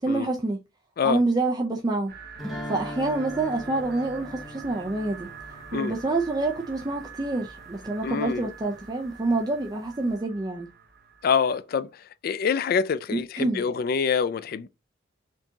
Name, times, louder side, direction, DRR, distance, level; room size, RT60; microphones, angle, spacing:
voice 1, 0.0-0.6 1.0-2.2 2.7-5.3 5.7-10.7 13.4-13.6, right 2 dB, 20° right, 0.4 m, -27 dB
sound 1, 2.1-11.6, right 5 dB, 50° right, 0.8 m, -45 dB
sound 2, 2.4-7.3, equal, ahead, 1.0 m, -40 dB
voice 2, 8.0-8.5 11.2-11.9 12.2-14.7, left 6 dB, 50° left, 0.3 m, -25 dB
4.4 x 2.7 x 2.8 m
head